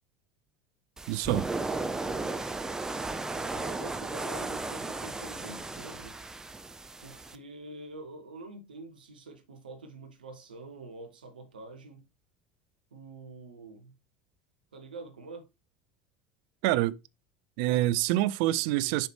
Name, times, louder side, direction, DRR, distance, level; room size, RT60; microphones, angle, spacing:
sound 1, 1.0-7.4, right 3 dB, 10° right, 0.7 m, -35 dB
voice 1, 1.1-1.5 16.6-17.0 17.6-19.1, right 15 dB, 55° right, 0.4 m, -26 dB
voice 2, 3.3-6.1 7.0-12.0 12.9-13.9 14.7-15.5, right 2 dB, 75° right, 1.1 m, -46 dB
7.4 x 4.9 x 3.2 m
figure-of-eight pair, 70°, 5 cm